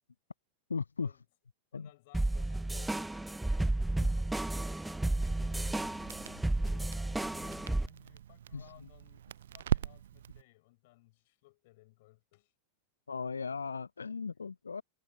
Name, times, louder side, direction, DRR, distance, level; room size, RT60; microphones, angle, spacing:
voice 1, 0.7-1.1 1.7-1.9 4.0-4.1 8.5-8.7 13.1-14.8, left 5 dB, 75° left, 0.7 m, -37 dB
voice 2, 1.7-5.4 6.1-12.5, left 21 dB, 50° left, 7.2 m, -61 dB
sound 1, 2.1-7.9, right 2 dB, 5° right, 0.6 m, -32 dB
Crackle, 5.1-10.4, right 10 dB, 60° right, 0.7 m, -40 dB
figure-of-eight pair, 90°, 0 cm